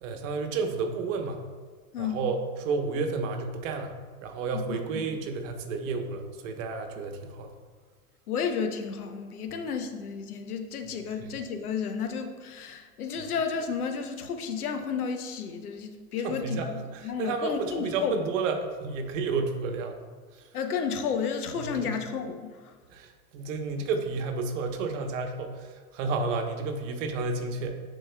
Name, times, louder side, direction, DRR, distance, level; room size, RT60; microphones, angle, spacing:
voice 1, 0.0-1.4 2.0-7.5 11.2-11.3 16.2-20.0 20.3-20.4 21.5-22.0 22.9-27.8, right 4 dB, 60° right, 5 dB, 1.1 m, -31 dB
voice 2, 8.3-18.2 20.5-22.7, left 6 dB, 85° left, 6 dB, 0.9 m, -32 dB
11.5 x 4.2 x 2.2 m, 1.5 s
hypercardioid pair, 105°, 43 cm